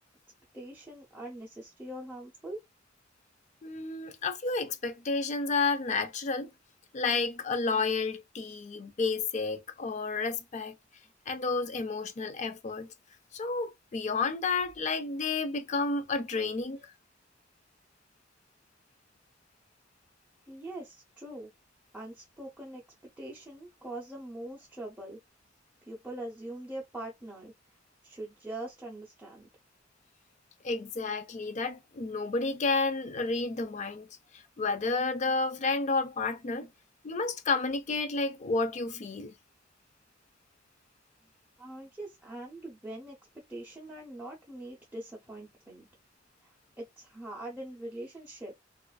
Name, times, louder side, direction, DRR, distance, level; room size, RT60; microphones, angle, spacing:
voice 1, 0.5-2.6 20.5-21.5 21.9-22.8 23.2-25.2 25.9-27.5 28.0-29.5 41.6-43.2 43.5-45.9 46.4-46.5 46.8-48.6, right 1 dB, 10° right, 0.6 m, -42 dB
voice 2, 3.6-6.5 6.9-10.7 11.3-12.9 13.3-16.8 30.6-34.1 34.6-36.7 37.0-39.3, left 3 dB, 40° left, 0.4 m, -31 dB
2.4 x 2.4 x 2.2 m
head